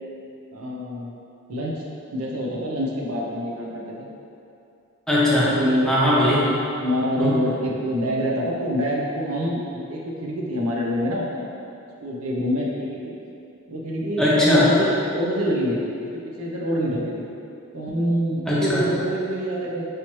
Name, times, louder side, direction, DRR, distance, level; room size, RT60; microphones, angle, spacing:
voice 1, 0.5-1.1 1.5-1.8 2.1-4.1 5.5-5.9 6.8-11.5 12.0-13.1 13.7-17.2 17.7-19.9, equal, 80° right, -3 dB, 0.6 m, -26 dB
voice 2, 5.1-5.5 5.8-6.5 7.2-7.4 14.2-14.7 18.5-18.8, left 1 dB, 5° left, -8 dB, 0.7 m, -19 dB
4.8 x 2.9 x 3.0 m, 2.7 s
head